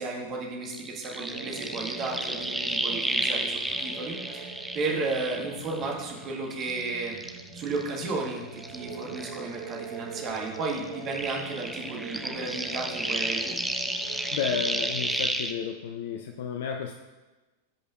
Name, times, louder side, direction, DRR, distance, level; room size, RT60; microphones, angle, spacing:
voice 1, 0.0-7.2 7.5-13.5, right 3 dB, 35° right, -1 dB, 1.6 m, -33 dB
sound 1, 0.7-6.2 6.5-9.9 10.1-15.5, right 1 dB, 5° right, 0.5 m, -32 dB
sound 2, 1.2-15.2, right 4 dB, 70° right, 2.2 m, -42 dB
voice 2, 14.3-16.9, left 7 dB, 55° left, 5 dB, 0.4 m, -32 dB
13.5 x 5.0 x 2.4 m, 1.2 s
figure-of-eight pair, 90°, 0 cm